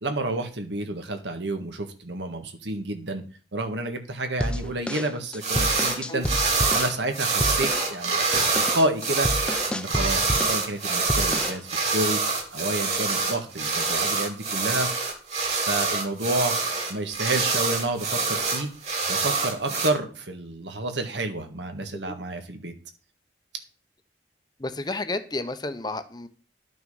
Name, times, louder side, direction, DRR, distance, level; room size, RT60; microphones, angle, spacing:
voice 1, 0.0-3.2 3.5-6.3 6.7-9.3 9.7-12.2 12.5-14.9 15.6-16.5 16.9-18.7 19.1-22.7, right 2 dB, 80° right, 6 dB, 1.8 m, -29 dB
sound 1, 4.4-7.0 7.4-7.9 8.2-10.7 11.1-11.6, equal, 5° left, 0.5 m, -30 dB
sound 2, 5.4-6.0 6.2-19.9, right 4 dB, 40° right, 2.5 m, -25 dB
voice 2, 24.6-26.3, left 2 dB, 25° left, 10 dB, 0.8 m, -31 dB
12.0 x 6.0 x 5.6 m, 0.38 s
head